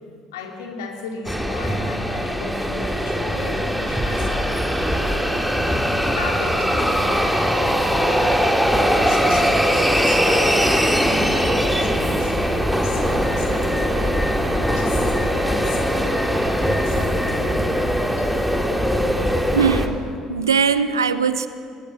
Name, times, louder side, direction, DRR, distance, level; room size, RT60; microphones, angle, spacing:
voice 1, 0.3-8.4 8.8-14.2 14.7-18.3, left 4 dB, 75° left, 2 dB, 3.1 m, -36 dB
sound 1, 1.2-19.9, equal, 5° right, 2.8 m, -21 dB
voice 2, 19.5-20.0 20.3-21.5, right 6 dB, 85° right, 13 dB, 0.8 m, -20 dB
22.5 x 20.5 x 7.9 m, 2.4 s
figure-of-eight pair, 55°, 2 cm